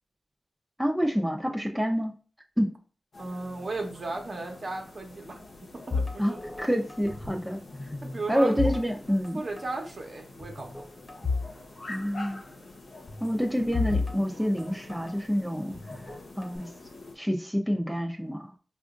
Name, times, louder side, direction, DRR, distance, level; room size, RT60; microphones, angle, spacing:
voice 1, 0.8-2.1 2.6-2.7 6.2-7.6 8.3-9.4 11.9-12.4 13.2-15.8 16.4-16.7 17.1-18.5, equal, ahead, 2 dB, 0.7 m, -27 dB
sound 1, 3.1-17.2, left 2 dB, 75° left, 0.9 m, -47 dB
voice 2, 3.2-5.4 5.9-6.4 8.0-8.7 9.3-10.8, right 2 dB, 60° right, 1 dB, 1.0 m, -35 dB
sound 2, 5.9-7.5 7.7-9.3 9.6-9.8 10.4-11.5 11.8-11.9 13.1-15.1 15.7-16.6, left 4 dB, 30° left, 1.0 m, -33 dB
4.9 x 2.5 x 2.5 m, 0.38 s
cardioid pair, 50°, 0 cm